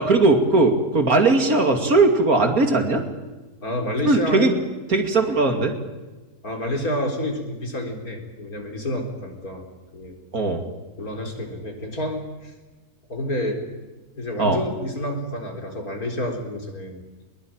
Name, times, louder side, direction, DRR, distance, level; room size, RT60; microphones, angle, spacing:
voice 1, 0.0-3.0 4.0-4.5 4.9-5.7 10.3-10.6 14.4-14.6, right 3 dB, 65° right, 5 dB, 3.1 m, -18 dB
voice 2, 3.6-4.6 5.2-5.3 6.4-9.7 9.9-10.2 10.5-10.6 11.0-12.5 13.1-13.7 14.2-17.0, left 1 dB, 70° left, 3 dB, 4.5 m, -29 dB
21.5 x 21.5 x 9.0 m, 1.2 s
omnidirectional pair, 1.6 m